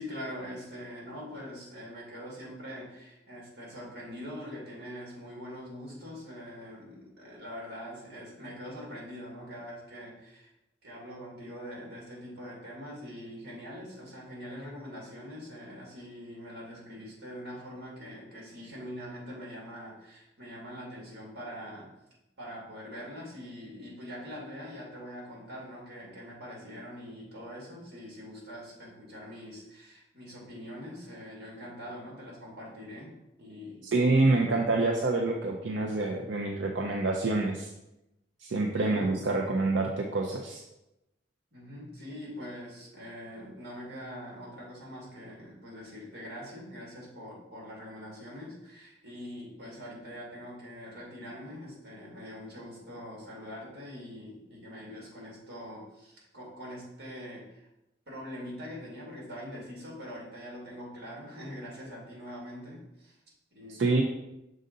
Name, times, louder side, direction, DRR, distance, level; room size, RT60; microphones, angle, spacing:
voice 1, 0.0-10.5 10.8-21.9 22.4-33.8 34.2-34.6 38.7-39.2 41.5-57.7 58.1-63.2 63.5-64.0, equal, 65° right, -4 dB, 2.3 m, -43 dB
voice 2, 33.8-37.7 38.4-40.6 63.7-64.0, right 2 dB, 90° right, 1 dB, 0.5 m, -27 dB
6.4 x 3.9 x 3.9 m, 0.92 s
head